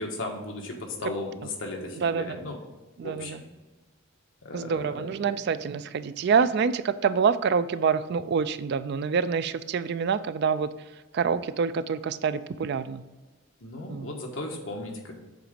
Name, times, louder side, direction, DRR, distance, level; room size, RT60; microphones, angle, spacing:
voice 1, 0.0-2.6 3.0-3.4 4.4-5.0 13.6-15.2, left 2 dB, 70° left, 1 dB, 1.3 m, -36 dB
voice 2, 1.9-2.4 3.0-3.4 4.5-10.7 11.1-13.0 13.9-14.1, right 6 dB, 50° right, 13 dB, 0.3 m, -26 dB
7.9 x 3.9 x 5.1 m, 1.2 s
head